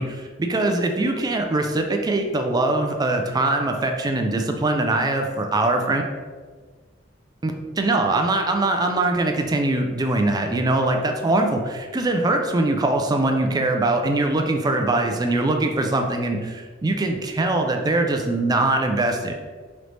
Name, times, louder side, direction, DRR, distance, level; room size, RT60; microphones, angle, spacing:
voice 1, 0.0-6.0 7.4-7.5 7.8-19.3, right 2 dB, 20° right, 4 dB, 0.3 m, -22 dB
3.9 x 3.2 x 3.1 m, 1.5 s
head